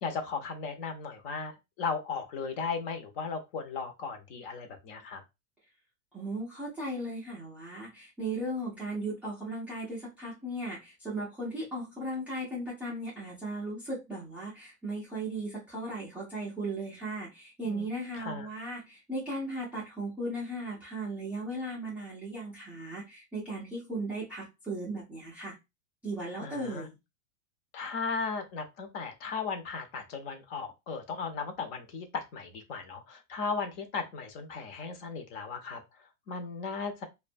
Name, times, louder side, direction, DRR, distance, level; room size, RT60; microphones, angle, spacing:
voice 1, 0.0-5.2 17.6-17.9 18.1-18.5 26.4-26.9 27.7-37.1, left 5 dB, 45° left, 6 dB, 0.6 m, -36 dB
voice 2, 6.1-25.5 26.0-26.9, right 1 dB, 5° right, -7 dB, 0.3 m, -37 dB
2.5 x 2.2 x 2.4 m, 0.23 s
supercardioid pair, 145°, 39 cm